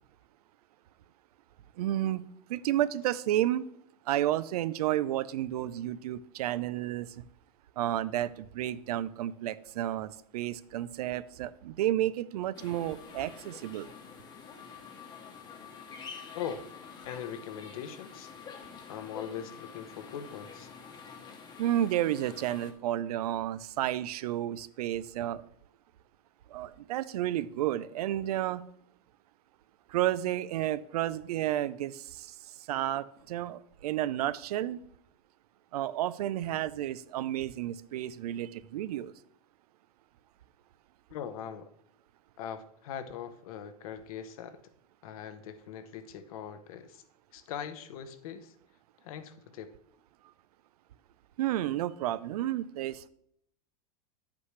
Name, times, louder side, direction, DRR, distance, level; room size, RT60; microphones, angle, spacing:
voice 1, 1.8-2.2 2.5-3.7 4.1-7.1 7.8-13.9 21.6-25.4 26.5-28.6 29.9-32.3 32.7-34.8 35.7-39.1 51.4-53.1, right 13 dB, 85° right, 17 dB, 0.5 m, -31 dB
sound 1, 12.5-22.7, left 6 dB, 20° left, 1.0 m, -48 dB
voice 2, 17.0-18.3 18.9-20.7 41.1-41.7 42.4-44.6 45.0-47.0 47.3-48.5 49.0-49.7, left 8 dB, 70° left, 11 dB, 0.9 m, -41 dB
9.7 x 8.4 x 3.2 m, 0.71 s
supercardioid pair, 155°, 19 cm